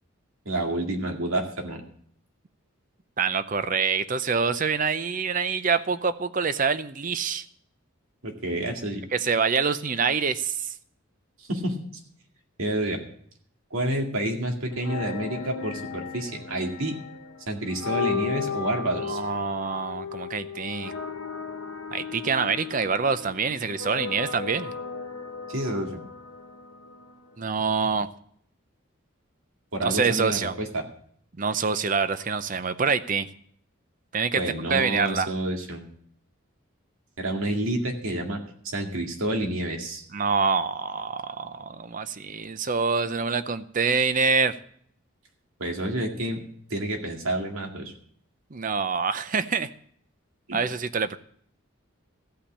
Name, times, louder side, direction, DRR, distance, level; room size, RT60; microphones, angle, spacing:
voice 1, 0.5-1.8 8.2-9.0 11.4-11.8 12.6-13.0 13.7-16.9 17.5-19.2 25.5-26.0 29.7-30.9 34.4-35.9 37.2-40.0 45.6-46.4 46.7-47.9 50.5-50.6, right 1 dB, 80° right, 2 dB, 2.2 m, -29 dB
voice 2, 3.2-7.4 9.1-10.7 19.0-20.9 21.9-24.7 27.4-28.1 29.8-30.5 31.4-33.3 34.1-34.4 34.7-35.3 40.1-44.5 48.5-49.7 50.5-51.2, right 5 dB, 40° right, 12 dB, 0.6 m, -26 dB
sound 1, 14.7-27.6, left 6 dB, 80° left, 1.2 m, -35 dB
15.0 x 5.6 x 8.5 m, 0.63 s
head